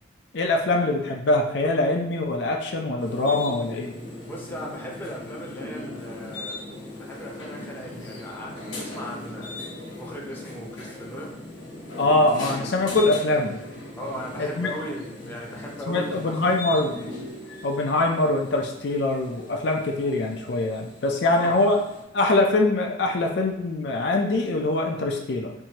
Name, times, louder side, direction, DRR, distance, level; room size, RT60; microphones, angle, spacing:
voice 1, 0.3-3.9 12.0-13.6 14.4-14.7 15.9-17.1 17.6-21.8 22.1-25.5, left 2 dB, 60° left, 1 dB, 0.5 m, -23 dB
sound 1, 3.0-22.0, left 2 dB, 80° left, 1.2 m, -39 dB
voice 2, 4.2-6.6 7.0-9.6 9.9-11.3 14.0-16.7 21.2-21.6, equal, 10° left, -3 dB, 0.7 m, -37 dB
4.5 x 2.7 x 2.8 m, 0.84 s
head